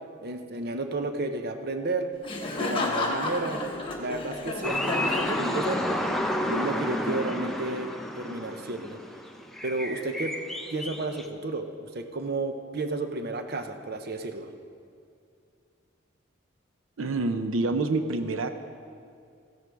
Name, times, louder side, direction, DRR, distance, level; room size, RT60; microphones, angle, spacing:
voice 1, 0.2-2.1 2.6-3.6 4.0-6.0 6.5-7.9 8.2-9.0 9.6-10.4 10.7-14.5, right 2 dB, 50° right, 7 dB, 0.8 m, -32 dB
Laughter, 2.2-6.2, left 2 dB, 25° left, 1.2 m, -32 dB
sound 1, 4.6-11.3, left 1 dB, ahead, 0.6 m, -31 dB
voice 2, 17.0-18.5, right 3 dB, 85° right, 8 dB, 0.6 m, -27 dB
14.5 x 11.0 x 4.7 m, 2.3 s
head